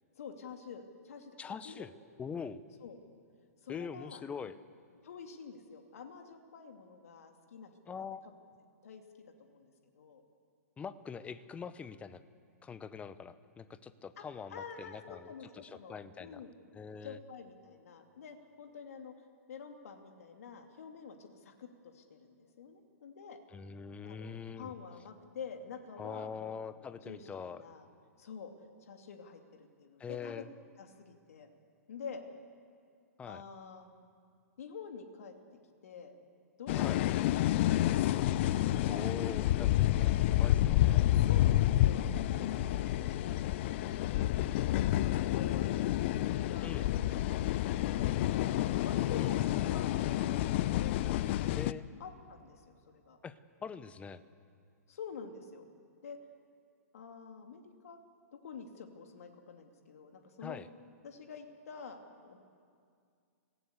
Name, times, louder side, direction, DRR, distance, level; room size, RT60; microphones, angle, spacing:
voice 1, 0.2-2.3 2.8-3.0 3.6-4.2 5.0-8.0 8.8-10.2 14.2-14.3 14.5-16.5 17.0-19.1 19.5-23.4 24.0-27.9 28.2-28.5 28.8-30.4 30.8-31.5 31.9-32.2 33.3-33.9 34.6-35.3 35.8-36.2 36.6-37.1 38.6-39.5 41.1-42.0 42.3-43.5 45.1-46.1 46.5-51.1 52.0-53.2 54.9-55.6 56.0-56.2 56.9-58.0 58.3-60.6 61.0-62.4, left 6 dB, 60° left, 4 dB, 2.7 m, -48 dB
voice 2, 1.4-1.9 2.2-2.6 3.7-4.6 7.9-8.3 10.8-12.2 12.6-16.4 16.7-17.2 23.5-24.7 26.0-27.6 30.0-30.5 33.2-33.4 36.7-37.0 38.9-41.1 46.6-46.9 49.1-49.3 51.5-51.9 53.2-54.2 60.4-60.7, left 6 dB, 15° left, 14 dB, 1.0 m, -43 dB
sound 1, 36.7-51.7, left 14 dB, 45° left, 0.7 m, -29 dB
26.0 x 17.5 x 8.1 m, 2.2 s
figure-of-eight pair, 115°, 9 cm